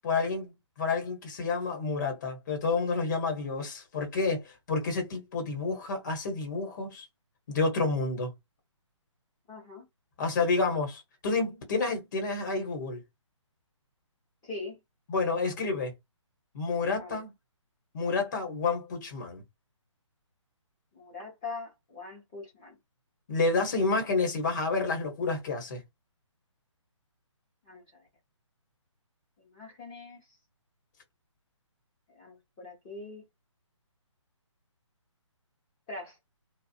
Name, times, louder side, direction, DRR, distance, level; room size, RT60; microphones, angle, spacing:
voice 1, 0.0-0.5 0.8-7.0 7.5-8.3 10.2-13.0 15.1-15.9 16.5-17.3 17.9-19.4 23.3-25.8, left 3 dB, 35° left, 1.1 m, -29 dB
voice 2, 9.5-9.8 14.4-14.8 17.0-17.2 20.9-22.8 27.7-28.1 29.4-30.4 32.1-33.2 35.9-36.2, left 3 dB, 20° left, 0.8 m, -42 dB
2.6 x 2.3 x 2.7 m
hypercardioid pair, 160°, 16 cm